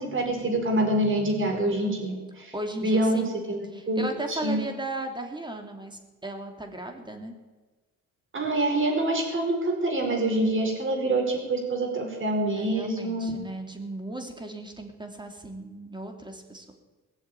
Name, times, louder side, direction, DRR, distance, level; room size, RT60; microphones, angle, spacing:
voice 1, 0.0-2.5 2.8-4.6 8.3-13.3, right 1 dB, 40° right, 2 dB, 4.8 m, -26 dB
voice 2, 2.5-3.3 3.7-7.3 12.6-16.7, right 1 dB, 15° right, 4 dB, 2.8 m, -36 dB
19.0 x 7.2 x 9.3 m, 1.3 s
cardioid pair, 90°, 30 cm